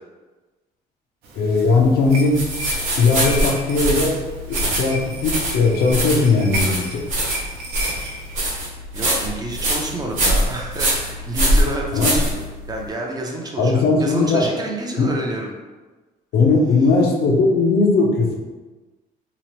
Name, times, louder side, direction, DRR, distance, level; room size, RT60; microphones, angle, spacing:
sound 1, 1.2-8.7, equal, 70° right, 0.6 m, -34 dB
voice 1, 1.3-2.4 3.0-4.2 4.5-7.0 11.9-12.1 13.6-14.4 15.0-15.1 16.3-18.4, left 3 dB, 70° left, 0 dB, 0.6 m, -18 dB
sound 2, 2.3-12.8, right 1 dB, 50° right, 1.0 m, -23 dB
voice 2, 8.9-12.4 12.7-15.5, right 1 dB, 25° right, 0 dB, 0.5 m, -29 dB
2.9 x 2.0 x 3.0 m, 1.2 s
cardioid pair, 110°, 17 cm